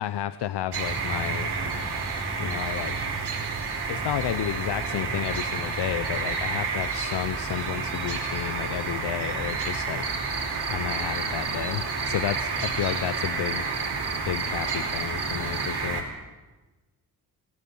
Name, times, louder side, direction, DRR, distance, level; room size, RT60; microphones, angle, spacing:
voice 1, 0.0-1.5 2.4-3.0 3.9-10.0 10.7-13.6 14.3-16.0, left 11 dB, 85° left, 13 dB, 0.8 m, -31 dB
sound 1, 0.7-16.0, right 4 dB, 75° right, 4.7 m, -30 dB
Cricket, 10.0-15.7, right 5 dB, 40° right, 2.5 m, -35 dB
28.0 x 19.5 x 5.5 m, 1.2 s
cardioid pair, 105°, 40 cm